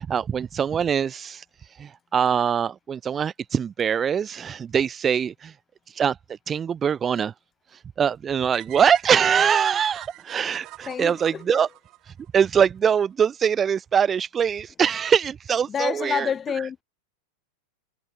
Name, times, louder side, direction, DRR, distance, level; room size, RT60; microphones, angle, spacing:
voice 1, 0.0-1.4 1.8-5.5 5.9-6.2 6.5-7.3 8.0-11.7 12.3-16.3, right 7 dB, 20° right, 0.5 m, -23 dB
sound 1, 8.5-12.6, right 18 dB, 40° right, 7.9 m, -43 dB
voice 2, 10.9-11.6 15.7-16.8, left 7 dB, 20° left, 2.7 m, -28 dB
figure-of-eight pair, 90°, 0 cm